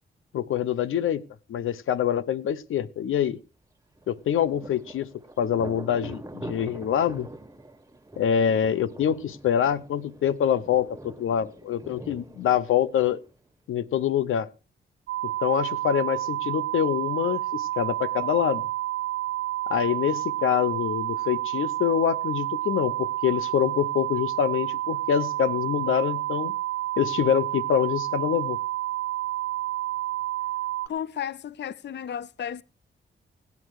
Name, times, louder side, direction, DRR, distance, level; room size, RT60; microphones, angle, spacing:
voice 1, 0.3-1.2 1.5-3.4 4.1-5.1 5.4-7.3 8.2-13.2 13.7-14.5 15.2-18.6 19.7-26.5 27.0-28.6, left 9 dB, 90° left, 0.9 m, -25 dB
Thunder, 4.0-13.5, right 1 dB, 15° right, 1.7 m, -44 dB
sound 1, 15.1-30.9, right 15 dB, 85° right, 0.7 m, -29 dB
voice 2, 30.9-32.6, left 9 dB, 60° left, 0.6 m, -33 dB
17.5 x 9.6 x 4.8 m
cardioid pair, 65°, 20 cm